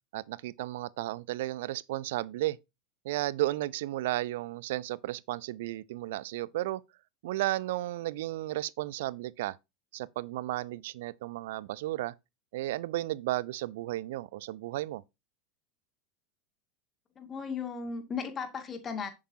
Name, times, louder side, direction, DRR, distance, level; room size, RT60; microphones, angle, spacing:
voice 1, 0.1-2.6 3.0-6.8 7.2-9.6 9.9-12.1 12.5-15.0, right 16 dB, 60° right, 0.5 m, -33 dB
voice 2, 17.2-19.1, left 5 dB, 25° left, 2.1 m, -36 dB
10.0 x 8.6 x 2.7 m
figure-of-eight pair, 80°, 0 cm